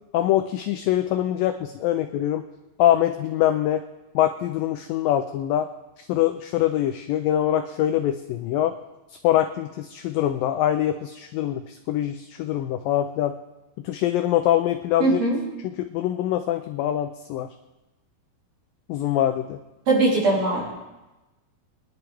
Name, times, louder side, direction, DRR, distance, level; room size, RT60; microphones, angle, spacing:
voice 1, 0.1-2.4 2.8-3.8 4.2-5.7 6.0-8.7 9.2-13.4 13.8-15.2 15.6-17.5 18.9-19.6, left 12 dB, 80° left, 7 dB, 2.0 m, -24 dB
voice 2, 15.0-15.4 19.9-20.7, right 2 dB, 45° right, -5 dB, 4.8 m, -20 dB
24.5 x 11.0 x 3.5 m, 1.0 s
omnidirectional pair, 4.6 m